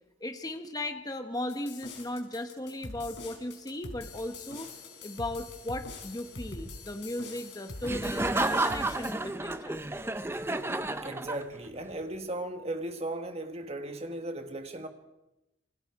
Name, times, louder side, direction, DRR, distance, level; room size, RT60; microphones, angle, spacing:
voice 1, 0.2-4.7 5.0-9.8, left 1 dB, 20° left, 1.0 m, -37 dB
sound 1, 1.5-9.1, left 2 dB, 60° left, 4.6 m, -43 dB
Laughter, 7.8-11.8, right 2 dB, 10° right, 0.7 m, -31 dB
voice 2, 11.0-14.9, right 1 dB, 30° right, 1.7 m, -36 dB
27.5 x 22.5 x 4.7 m
head